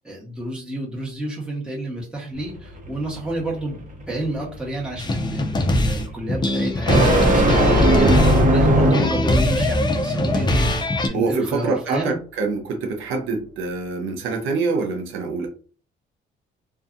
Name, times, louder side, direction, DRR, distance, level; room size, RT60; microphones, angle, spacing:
voice 1, 0.0-10.7 11.1-12.2, right 1 dB, 5° right, -3 dB, 1.1 m, -30 dB
sound 1, 2.4-9.3, right 1 dB, 40° right, 0.9 m, -20 dB
sound 2, 5.0-11.1, left 1 dB, 20° left, 0.5 m, -21 dB
voice 2, 11.1-15.5, right 4 dB, 85° right, 4 dB, 0.6 m, -25 dB
2.5 x 2.3 x 2.5 m, 0.39 s
cardioid pair, 90°, 20 cm